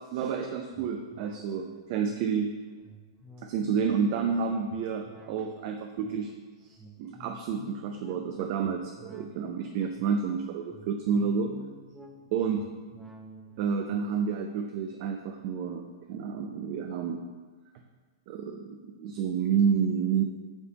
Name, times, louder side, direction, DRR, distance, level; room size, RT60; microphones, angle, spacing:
voice 1, 0.1-2.5 3.4-6.3 6.6-11.5 12.3-12.6 13.6-17.2 18.3-20.2, right 6 dB, 45° right, 4 dB, 0.5 m, -29 dB
sound 1, 0.7-16.5 16.9-17.0, equal, ahead, 0.8 m, -52 dB
7.2 x 3.3 x 5.4 m, 1.4 s
figure-of-eight pair, 110°, 2 cm